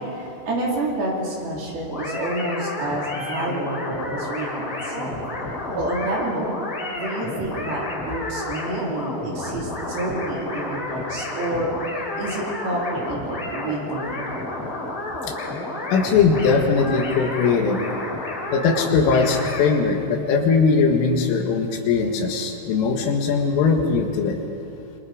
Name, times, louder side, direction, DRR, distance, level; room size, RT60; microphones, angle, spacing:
voice 1, 0.0-5.2 5.7-6.5 6.9-11.9 12.2-14.4, right 1 dB, 55° right, -3 dB, 5.0 m, -29 dB
sound 1, 1.9-19.7, left 2 dB, 30° left, 3.7 m, -31 dB
voice 2, 15.9-17.8 18.5-24.4, left 5 dB, 85° left, 3 dB, 4.3 m, -20 dB
27.0 x 24.5 x 5.1 m, 2.7 s
omnidirectional pair, 5.6 m